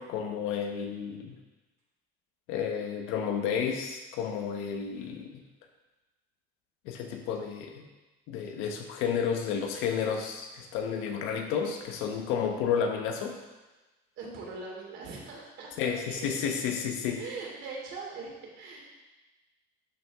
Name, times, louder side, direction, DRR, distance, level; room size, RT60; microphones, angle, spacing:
voice 1, 0.0-1.4 2.5-5.4 6.8-7.9 8.3-13.4 15.8-17.2, left 7 dB, 85° left, 3 dB, 1.3 m, -31 dB
voice 2, 14.2-16.5 17.1-18.8, right 4 dB, 65° right, -3 dB, 3.0 m, -41 dB
12.0 x 5.6 x 3.7 m, 1.1 s
cardioid pair, 125°, 21 cm